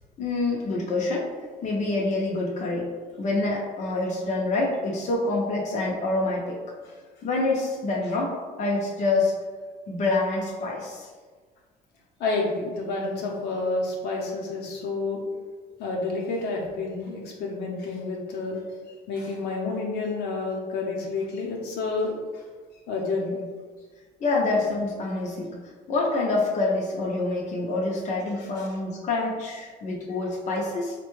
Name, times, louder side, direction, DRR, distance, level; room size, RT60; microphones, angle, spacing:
voice 1, 0.2-1.3 1.6-2.9 3.2-6.6 7.2-9.3 9.9-11.1 24.2-25.5 25.9-30.9, left 2 dB, 45° left, -3 dB, 0.7 m, -26 dB
voice 2, 12.2-15.2 15.8-18.6 19.1-22.2 22.9-23.4 28.6-28.7, left 3 dB, 75° left, -2 dB, 0.8 m, -29 dB
4.0 x 2.2 x 3.0 m, 1.5 s
cardioid pair, 110°, 17 cm